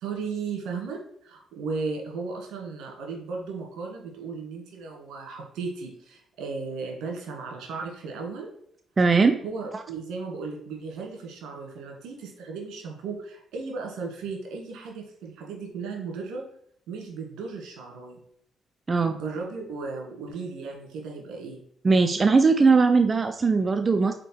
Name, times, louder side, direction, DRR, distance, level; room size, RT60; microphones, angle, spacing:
voice 1, 0.0-8.5 9.4-16.4 16.9-18.2 19.1-21.6, right 4 dB, 85° right, 1 dB, 2.0 m, -35 dB
voice 2, 9.0-9.4 9.7-9.8 18.9-19.2 21.8-24.1, right 4 dB, 30° right, 7 dB, 0.5 m, -20 dB
5.0 x 4.5 x 4.6 m, 0.67 s
cardioid pair, 90°, 0 cm